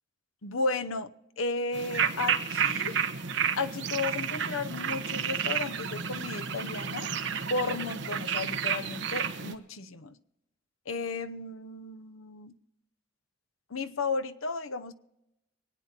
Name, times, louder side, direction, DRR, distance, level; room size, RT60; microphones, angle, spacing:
voice 1, 0.4-3.0 3.6-7.1 7.5-10.2 10.9-12.5 13.7-14.9, left 3 dB, 85° left, 9 dB, 0.8 m, -34 dB
sound 1, 1.7-9.5, right 7 dB, 60° right, 1.0 m, -31 dB
24.5 x 9.1 x 4.4 m, 0.88 s
head